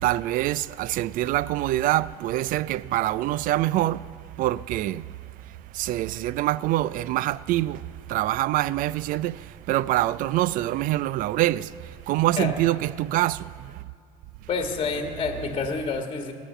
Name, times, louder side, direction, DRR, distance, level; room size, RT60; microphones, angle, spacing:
voice 1, 0.0-4.1 4.4-5.1 5.7-7.8 8.1-11.7 12.1-13.8, right 15 dB, 50° right, 0.4 m, -25 dB
voice 2, 14.5-16.3, left 4 dB, 30° left, 1.6 m, -28 dB
18.0 x 7.3 x 6.7 m
supercardioid pair, 90°, 18 cm